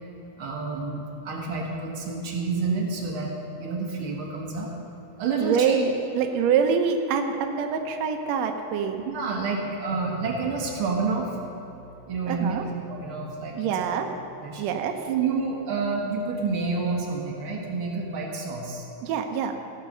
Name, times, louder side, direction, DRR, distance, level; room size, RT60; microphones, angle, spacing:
voice 1, 0.4-4.7 5.2-5.8 9.0-11.4 12.1-12.6 12.9-13.5 14.4-14.6 15.1-18.8, right 4 dB, 55° right, -1 dB, 1.7 m, -29 dB
voice 2, 5.4-9.0 12.3-12.6 13.5-14.1 14.6-15.0 19.0-19.6, right 6 dB, 85° right, 4 dB, 1.5 m, -25 dB
sound 1, 9.2-15.5, left 1 dB, 45° left, 2.7 m, -46 dB
15.0 x 6.6 x 6.6 m, 3.0 s
omnidirectional pair, 4.0 m